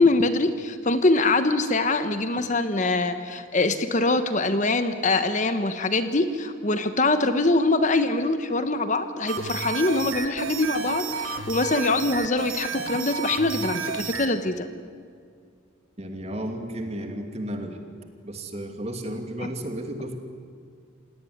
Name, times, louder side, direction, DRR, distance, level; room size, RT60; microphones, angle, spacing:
voice 1, 0.0-14.7 19.4-19.5, left 2 dB, 35° left, 10 dB, 1.2 m, -23 dB
sound 1, 9.3-14.3, right 6 dB, 80° right, 1.9 m, -32 dB
voice 2, 16.0-17.8 18.2-20.2, right 1 dB, 30° right, 5 dB, 2.7 m, -33 dB
28.0 x 18.0 x 9.7 m, 2.2 s
head